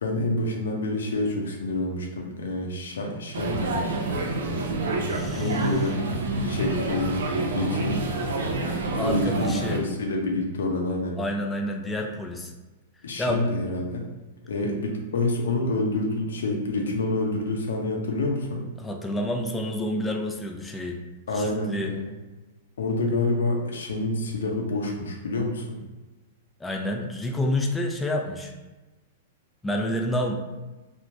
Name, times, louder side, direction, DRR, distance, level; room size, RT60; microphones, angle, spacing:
voice 1, 0.0-3.9 5.3-6.0 6.4-8.0 8.9-11.2 13.0-14.1 14.4-18.7 21.3-22.1 22.8-25.8, left 2 dB, 85° left, 1 dB, 0.6 m, -28 dB
sound 1, 3.3-9.8, right 2 dB, 75° right, 0.5 m, -28 dB
voice 2, 5.0-5.6 9.0-9.8 11.2-12.5 13.2-13.4 14.6-14.7 18.8-21.0 21.3-21.9 26.6-28.5 29.6-30.3, left 1 dB, 10° left, 2 dB, 0.3 m, -29 dB
3.1 x 2.1 x 2.5 m, 1.1 s
hypercardioid pair, 125°, 0 cm